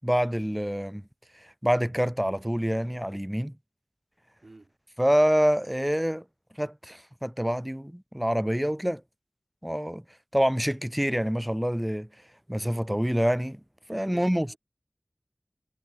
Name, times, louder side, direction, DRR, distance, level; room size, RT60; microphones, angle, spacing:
voice 1, 0.0-1.0 1.6-3.5 5.0-6.2 6.6-9.0 9.6-10.0 10.3-12.1 12.5-13.6 13.9-14.5, equal, 10° right, 0.4 m, -26 dB
voice 2, 4.4-4.7 14.1-14.6, right 2 dB, 75° right, 5.6 m, -49 dB
wide cardioid pair, 45°, 0 cm